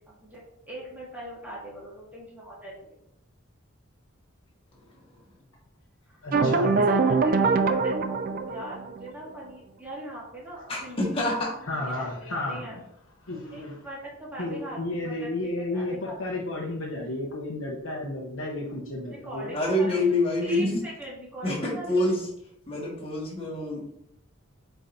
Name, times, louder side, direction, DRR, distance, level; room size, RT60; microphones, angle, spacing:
voice 1, 0.2-3.0 6.1-11.3 11.7-12.8 13.5-16.2 19.1-20.0 20.4-22.1, right 1 dB, 10° right, -6 dB, 2.1 m, -41 dB
voice 2, 6.2-6.7 11.7-12.8 13.2-13.8 14.4-19.6, left 2 dB, 75° left, -4 dB, 1.0 m, -32 dB
sound 1, 6.3-9.1, right 4 dB, 40° right, 0.4 m, -23 dB
voice 3, 10.7-11.6 19.5-20.8 21.4-22.2 22.7-23.9, left 1 dB, 25° left, -4 dB, 1.8 m, -26 dB
7.7 x 4.7 x 2.8 m, 0.78 s
head